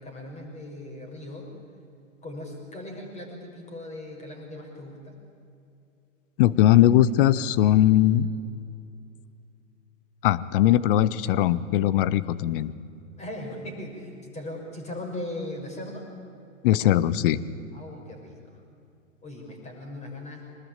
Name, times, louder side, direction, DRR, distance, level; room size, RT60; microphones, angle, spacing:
voice 1, 0.0-1.5 2.2-5.2 13.2-16.0 17.7-18.4 19.2-20.4, left 1 dB, 15° left, 1 dB, 6.0 m, -38 dB
voice 2, 6.4-8.3 10.2-12.7 16.6-17.4, left 12 dB, 45° left, 18 dB, 1.0 m, -20 dB
24.5 x 19.5 x 9.0 m, 2.5 s
figure-of-eight pair, 110°, 38 cm